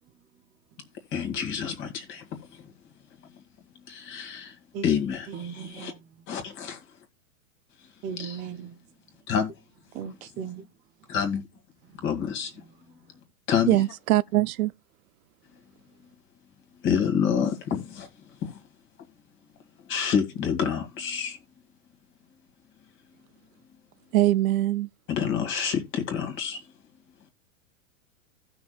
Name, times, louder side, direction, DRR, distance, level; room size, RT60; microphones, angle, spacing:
voice 1, 1.1-2.2 3.9-4.5 4.8-5.3 5.5-5.9 6.3-6.8 8.2-8.4 9.3-9.5 11.1-11.4 12.0-12.5 13.5-13.8 16.8-18.1 18.4-18.5 19.9-21.4 25.1-26.6, left 7 dB, 30° left, 1.9 m, -27 dB
voice 2, 5.3-6.4 8.0-8.8 9.9-10.7 11.8-12.0 12.6-13.0, right 7 dB, 20° right, 0.5 m, -38 dB
voice 3, 13.7-14.7 24.1-24.9, right 15 dB, 80° right, 0.6 m, -22 dB
16.5 x 6.1 x 2.3 m
supercardioid pair, 155°, 42 cm